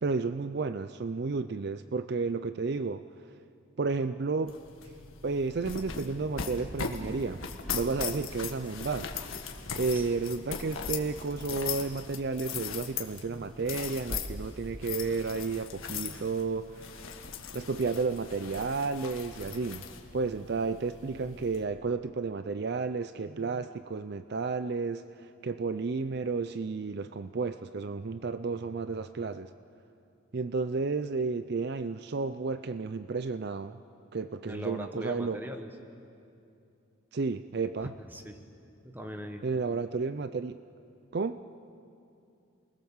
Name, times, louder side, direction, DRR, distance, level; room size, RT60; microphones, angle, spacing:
voice 1, 0.0-3.0 3.8-4.6 5.2-7.4 7.7-9.1 9.8-16.9 17.5-19.8 20.1-25.0 25.4-29.5 30.3-33.8 34.1-35.4 37.1-37.9 39.4-40.6 41.1-41.4, right 4 dB, 50° right, 12 dB, 0.5 m, -32 dB
sound 1, 4.5-21.6, left 6 dB, 80° left, 1.8 m, -39 dB
voice 2, 34.4-35.7 38.1-38.4 38.8-39.5, equal, 10° right, 5 dB, 1.4 m, -40 dB
29.0 x 20.5 x 7.2 m, 2.6 s
head